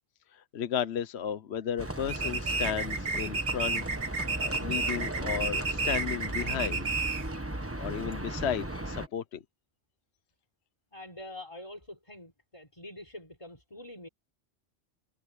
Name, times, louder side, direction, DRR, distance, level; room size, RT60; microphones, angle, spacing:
voice 1, 0.3-3.8 4.4-6.9 7.8-9.4, left 8 dB, 65° left, 1.1 m, -34 dB
Livestock farm animals working animals, 1.8-9.1, right 1 dB, 10° right, 1.4 m, -36 dB
sound 1, 2.1-7.4, right 4 dB, 65° right, 1.7 m, -31 dB
voice 2, 10.9-14.1, left 1 dB, 25° left, 4.2 m, -45 dB
omnidirectional pair, 1.2 m